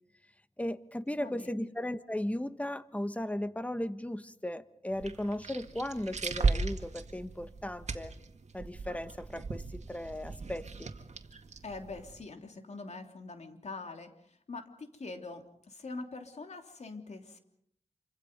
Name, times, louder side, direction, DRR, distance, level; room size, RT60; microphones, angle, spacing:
voice 1, 0.6-8.1 8.5-10.9, left 1 dB, 10° left, 12 dB, 1.3 m, -36 dB
voice 2, 1.2-1.7 11.6-14.1 14.5-17.4, left 3 dB, 70° left, 5 dB, 3.1 m, -44 dB
sound 1, 4.9-12.2, right 4 dB, 70° right, 2.0 m, -37 dB
27.5 x 25.5 x 5.3 m, 0.70 s
cardioid pair, 55°, 12 cm